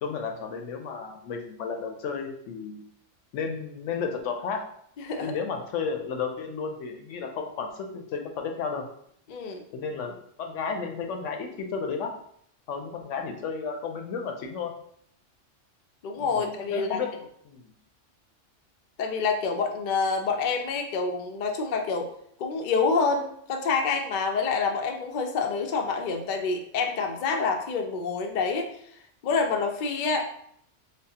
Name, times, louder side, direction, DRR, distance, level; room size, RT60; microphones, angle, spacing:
voice 1, 0.0-2.8 3.3-4.6 5.2-8.8 9.7-12.1 12.7-14.7 16.2-17.1 17.5-17.7, left 5 dB, 80° left, 4 dB, 0.9 m, -33 dB
voice 2, 5.0-5.3 9.3-9.6 16.0-17.0 19.0-22.1 22.4-28.7 29.2-30.3, left 4 dB, 60° left, 4 dB, 0.5 m, -27 dB
5.2 x 2.0 x 2.7 m, 0.68 s
omnidirectional pair, 1.3 m